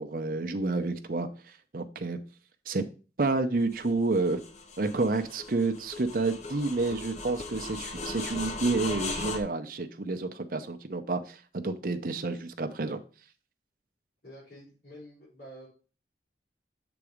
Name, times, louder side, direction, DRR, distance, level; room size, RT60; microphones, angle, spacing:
voice 1, 0.0-2.2 2.7-2.8 3.2-4.4 4.8-13.0, right 3 dB, 50° right, 8 dB, 0.7 m, -29 dB
sound 1, 3.7-9.4, left 3 dB, 40° left, 0.6 m, -38 dB
voice 2, 14.2-15.7, equal, 65° left, -9 dB, 4.3 m, -48 dB
7.0 x 4.1 x 4.9 m, 0.36 s
head